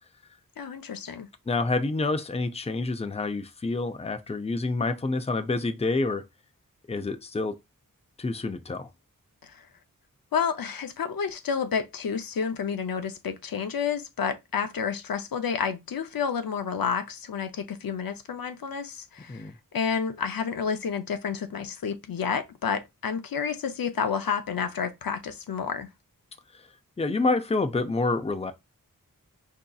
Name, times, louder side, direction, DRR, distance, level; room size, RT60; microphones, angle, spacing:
voice 1, 0.6-1.3 9.4-9.7 10.3-25.9, left 6 dB, 80° left, 0.6 m, -30 dB
voice 2, 1.5-6.2 6.9-7.6 8.2-8.9 19.3-19.6 26.5-26.7 27.0-28.5, left 3 dB, 20° left, 0.5 m, -28 dB
4.9 x 2.7 x 2.3 m
wide cardioid pair, 65°, 34 cm